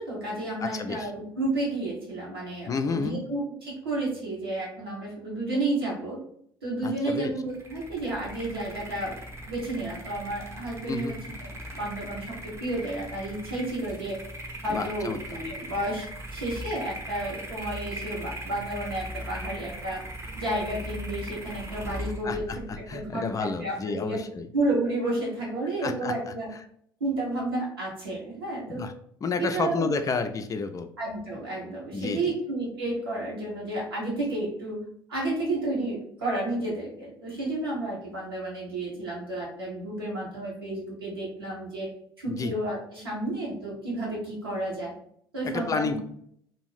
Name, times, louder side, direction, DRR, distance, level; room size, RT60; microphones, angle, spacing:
voice 1, 0.0-6.2 6.6-9.1 9.5-14.2 14.6-20.0 20.4-24.2 24.5-26.5 27.0-28.8 29.4-29.9 31.0-34.8 35.1-41.9 42.2-44.9 45.3-46.0, right 2 dB, 85° right, -5 dB, 1.0 m, -31 dB
voice 2, 0.6-1.1 2.7-3.2 6.8-7.3 10.9-11.2 14.7-15.2 22.2-24.5 25.8-26.1 28.7-28.9 29.2-30.9 31.9-32.3 42.3-42.5 45.4-46.0, left 4 dB, 30° left, 7 dB, 0.3 m, -30 dB
sound 1, 7.5-23.8, equal, 20° right, 0.7 m, -39 dB
2.6 x 2.4 x 3.2 m, 0.65 s
figure-of-eight pair, 55°, 12 cm